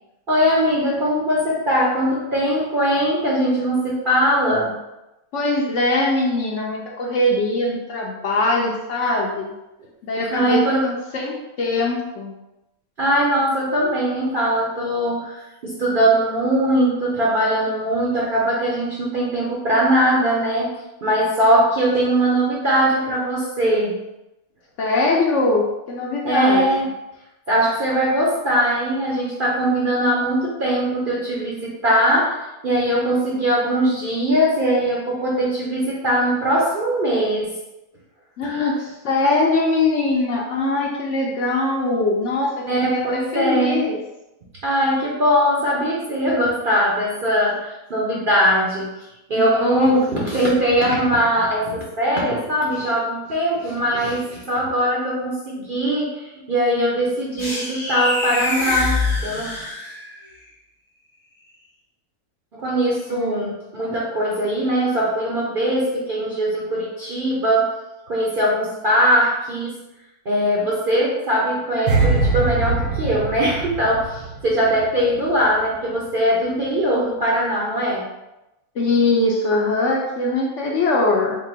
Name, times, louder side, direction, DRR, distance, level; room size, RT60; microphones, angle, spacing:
voice 1, 0.3-4.8 10.3-10.9 13.0-20.7 21.0-24.0 26.2-26.9 27.5-37.6 38.4-38.5 42.7-43.8 44.6-59.0 59.2-59.5 62.5-67.7 68.1-69.8 70.2-78.1, equal, 50° right, -5 dB, 0.6 m, -21 dB
voice 2, 5.3-9.5 10.0-12.3 24.8-26.6 38.4-44.0 49.4-50.3 63.1-63.4 78.7-81.4, left 2 dB, 65° left, -2 dB, 0.8 m, -22 dB
sound 1, 57.4-60.3, left 3 dB, 25° left, 0.8 m, -25 dB
sound 2, 71.9-75.1 75.3-75.6, right 3 dB, 85° right, 1.2 m, -22 dB
3.6 x 2.5 x 4.0 m, 0.96 s
omnidirectional pair, 1.6 m